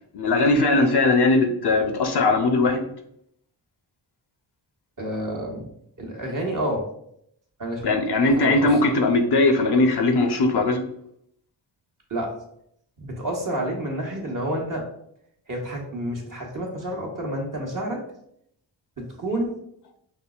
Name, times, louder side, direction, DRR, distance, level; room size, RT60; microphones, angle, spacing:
voice 1, 0.1-2.8 7.8-10.8, left 2 dB, 60° left, 5 dB, 0.6 m, -19 dB
voice 2, 5.0-5.7 6.0-6.8 7.6-7.8 8.3-8.7 12.1-12.3 13.0-14.8 15.5-18.0 19.0-19.5, right 1 dB, 45° right, -1 dB, 1.1 m, -29 dB
5.3 x 2.0 x 2.4 m, 0.72 s
cardioid pair, 55°, 45 cm